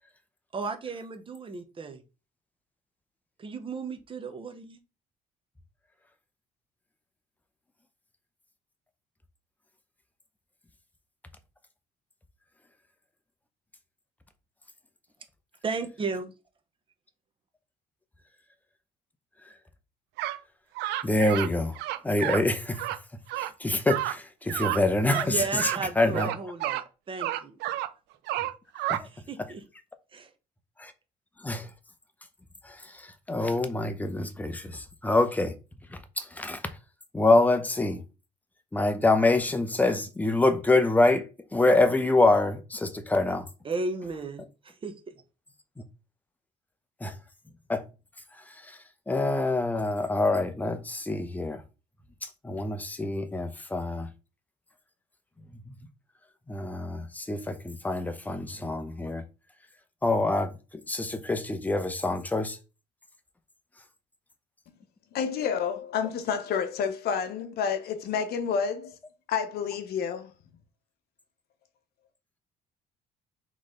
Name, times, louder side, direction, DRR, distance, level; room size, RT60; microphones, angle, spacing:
voice 1, 0.5-2.0 3.4-4.8 15.6-16.3 25.1-27.6 29.0-29.6 30.1-30.3 43.6-45.1, right 4 dB, 30° right, 0.8 m, -35 dB
sound 1, 20.2-20.4 20.8-21.5 21.8-22.4 22.7-23.0 23.3-23.5 23.9-24.1 24.5-24.8 25.1-25.3 25.6-25.8 26.1-26.8 27.2-27.9 28.3-29.0, right 14 dB, 85° right, 0.5 m, -30 dB
voice 2, 21.0-21.8 22.0-22.8 23.4-26.3 28.9-29.1 30.8-30.9 31.4-31.7 32.6-35.5 35.9-36.6 37.1-38.0 38.7-41.3 41.5-43.5 47.0-47.1 47.7-47.8 48.6-48.8 49.1-51.6 52.2-54.1 56.5-59.2 60.0-62.6, left 2 dB, 10° left, 0.7 m, -26 dB
voice 3, 65.1-69.0 69.3-70.3, left 7 dB, 70° left, 0.8 m, -29 dB
4.0 x 3.2 x 3.8 m
cardioid pair, 110°, 17 cm